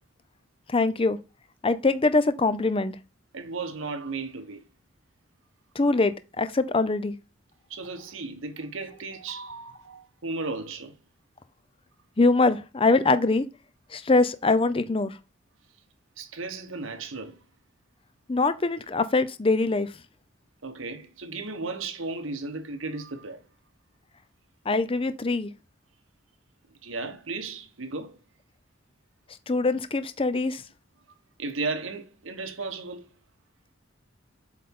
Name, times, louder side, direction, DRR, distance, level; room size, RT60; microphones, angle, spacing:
voice 1, 0.7-1.2 1.6-2.9 5.7-7.2 12.2-13.5 13.9-15.2 18.3-19.9 24.7-25.5 29.5-30.6, left 3 dB, 25° left, 0.5 m, -23 dB
voice 2, 3.3-4.6 7.7-11.0 16.2-17.4 20.6-23.4 26.8-28.2 31.4-33.1, right 3 dB, 80° right, 1.2 m, -35 dB
7.8 x 4.1 x 3.7 m
head